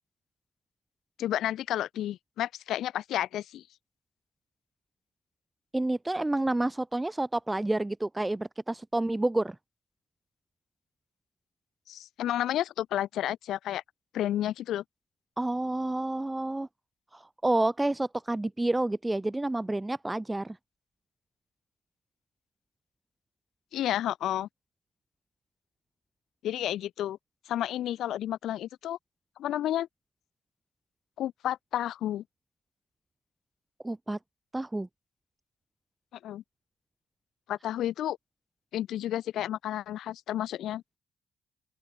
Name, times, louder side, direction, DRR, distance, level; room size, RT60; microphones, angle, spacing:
voice 1, 1.2-3.6 11.9-13.8 14.1-14.8 23.7-24.5 26.4-27.2 27.5-29.0 29.4-29.9 31.2-32.2 36.2-36.4 37.5-38.2 38.7-40.8, left 12 dB, 80° left, 4.1 m, -31 dB
voice 2, 5.7-9.6 15.4-16.7 17.1-20.6 33.8-34.2 34.5-34.9, right 2 dB, 10° right, 2.5 m, -29 dB
open air
cardioid pair, 115°, 0 cm